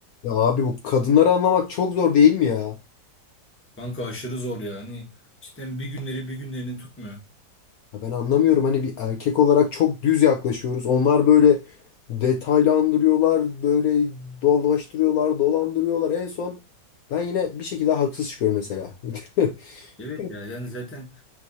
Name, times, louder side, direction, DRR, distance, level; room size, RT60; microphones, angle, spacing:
voice 1, 0.2-2.7 8.0-11.6 12.1-16.6 17.1-19.9 20.2-20.3, left 8 dB, 65° left, 1.0 m, -21 dB
voice 2, 3.8-5.1 5.4-7.2 20.0-21.2, equal, 10° left, 0.9 m, -33 dB
4.6 x 2.8 x 3.9 m
omnidirectional pair, 1.9 m